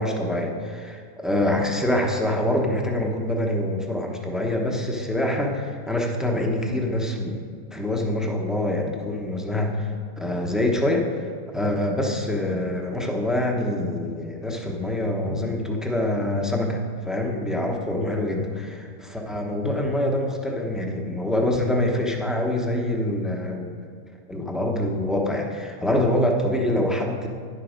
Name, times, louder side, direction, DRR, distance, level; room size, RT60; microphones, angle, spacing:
voice 1, 0.0-7.4 7.7-23.7 24.3-27.3, left 1 dB, ahead, 1 dB, 0.6 m, -25 dB
10.5 x 6.6 x 5.1 m, 2.2 s
omnidirectional pair, 1.6 m